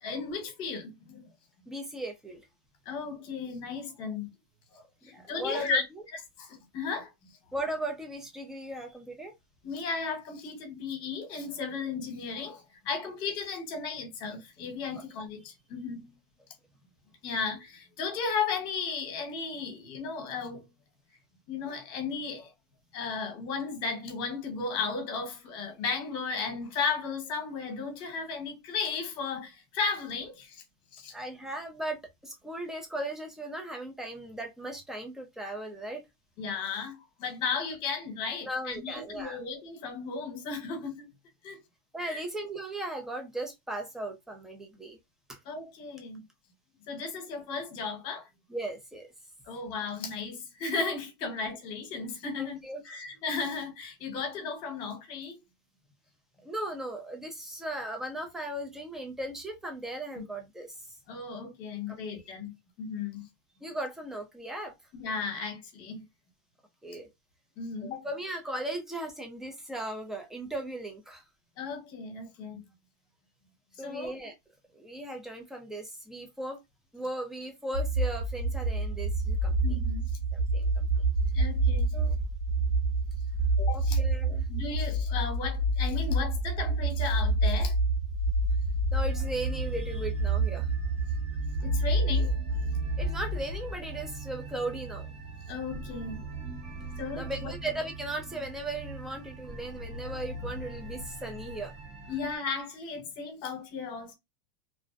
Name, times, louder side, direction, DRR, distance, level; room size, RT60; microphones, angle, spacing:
voice 1, 0.0-1.3 2.8-4.3 4.7-5.8 6.4-7.4 9.6-16.1 17.2-20.7 21.5-22.5 22.9-30.6 30.9-31.1 36.4-41.1 41.4-41.6 42.0-42.2 45.4-46.3 46.9-48.3 49.4-55.4 60.2-60.3 61.1-63.3 64.9-66.0 67.6-68.1 71.6-72.6 73.8-74.2 79.6-80.0 81.3-82.1 83.6-84.0 84.5-87.8 91.6-92.4 95.5-96.2 97.0-97.5 102.1-104.1, left 5 dB, 40° left, 1.0 m, -35 dB
voice 2, 1.7-2.5 5.0-6.0 7.5-9.3 31.1-36.0 38.4-39.4 41.9-45.0 45.3-45.4 48.5-49.1 52.4-52.8 54.1-54.3 56.4-61.0 61.9-62.2 63.6-64.7 66.8-67.1 68.0-71.2 73.8-74.3 74.7-76.6 76.9-79.8 80.3-81.1 81.9-82.2 83.7-84.5 88.9-90.7 93.0-95.1 97.2-101.7, right 1 dB, 5° right, 0.4 m, -37 dB
sound 1, 77.7-93.7, right 2 dB, 70° right, 0.4 m, -28 dB
sound 2, 89.0-102.4, right 2 dB, 50° right, 1.2 m, -41 dB
2.5 x 2.0 x 2.4 m
supercardioid pair, 155°, 13 cm